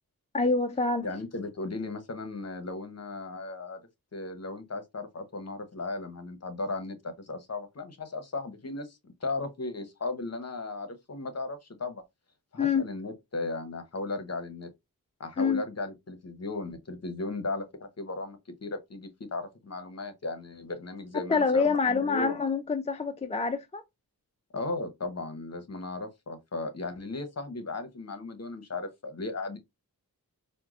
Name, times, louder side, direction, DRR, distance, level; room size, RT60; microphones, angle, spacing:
voice 1, 0.3-1.0 12.6-12.8 15.4-15.6 21.3-23.8, left 4 dB, 20° left, 0.3 m, -26 dB
voice 2, 1.0-3.8 4.1-12.0 12.5-14.7 15.2-22.4 24.5-29.6, left 3 dB, 45° left, 0.9 m, -36 dB
4.4 x 2.2 x 2.4 m
wide cardioid pair, 70°, 37 cm